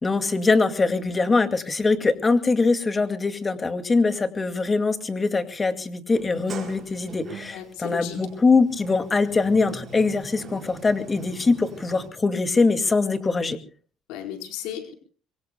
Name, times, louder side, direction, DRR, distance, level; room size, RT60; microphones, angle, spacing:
voice 1, 0.0-13.6, left 3 dB, 20° left, 9 dB, 2.2 m, -22 dB
Sliding door, 6.1-12.1, right 5 dB, 40° right, 5.7 m, -42 dB
voice 2, 7.5-8.2 14.1-14.9, left 10 dB, 90° left, 5 dB, 4.4 m, -35 dB
25.5 x 23.5 x 2.3 m, 0.41 s
cardioid pair, 120°, 0 cm